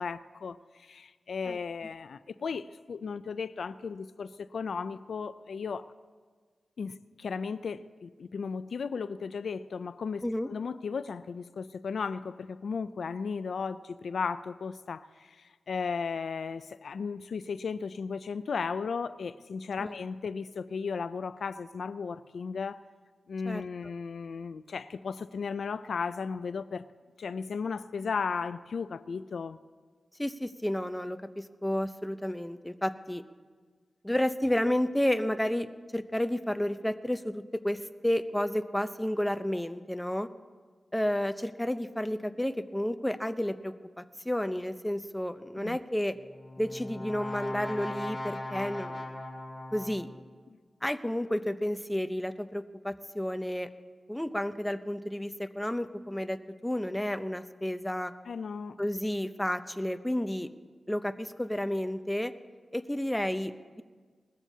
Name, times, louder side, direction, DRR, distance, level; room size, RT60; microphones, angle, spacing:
voice 1, 0.0-5.9 6.8-22.8 23.3-26.8 27.2-29.6 45.6-45.8 50.5-50.6 58.3-58.8, left 5 dB, 80° left, 14 dB, 0.3 m, -35 dB
voice 2, 30.2-33.2 34.0-35.7 35.9-40.3 40.9-46.2 46.6-49.1 49.7-50.1 50.8-53.7 54.1-58.1 58.8-60.5 60.9-62.3 62.7-63.8, left 1 dB, 10° left, 10 dB, 0.7 m, -31 dB
Brass instrument, 46.1-50.3, left 1 dB, 40° left, 2.9 m, -39 dB
20.0 x 14.5 x 2.8 m, 1.5 s
cardioid pair, 60°, 0 cm